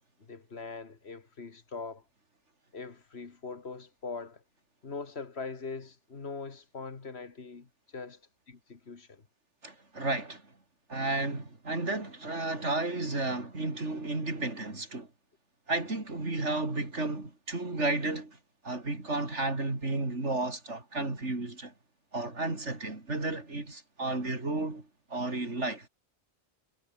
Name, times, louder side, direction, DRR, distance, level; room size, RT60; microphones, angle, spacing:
voice 1, 0.2-2.0 2.7-4.4 4.8-8.2 8.5-9.2, left 4 dB, 65° left, 2.1 m, -42 dB
voice 2, 9.6-10.4 10.9-15.1 15.7-18.4 18.6-21.7 22.1-25.9, right 2 dB, 80° right, 4.6 m, -33 dB
omnidirectional pair, 1.2 m